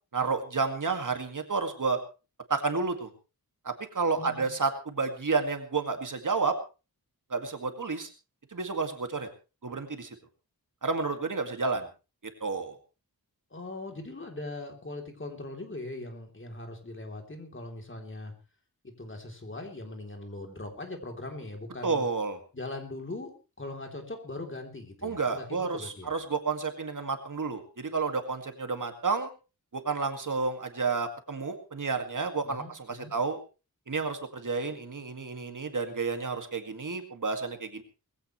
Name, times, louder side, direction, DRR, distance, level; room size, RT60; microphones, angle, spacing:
voice 1, 0.1-2.0 2.5-3.1 3.6-6.5 7.3-8.1 8.5-9.3 9.6-10.2 10.8-11.9 12.4-12.8 21.8-22.4 25.0-29.3 29.7-33.4 33.9-37.8, right 4 dB, 55° right, 7 dB, 2.1 m, -30 dB
voice 2, 4.2-4.5 13.5-18.3 18.8-22.1 22.5-26.1 32.4-33.1, left 2 dB, 30° left, 3 dB, 3.4 m, -40 dB
20.5 x 15.5 x 3.2 m, 0.32 s
wide cardioid pair, 110°, 37 cm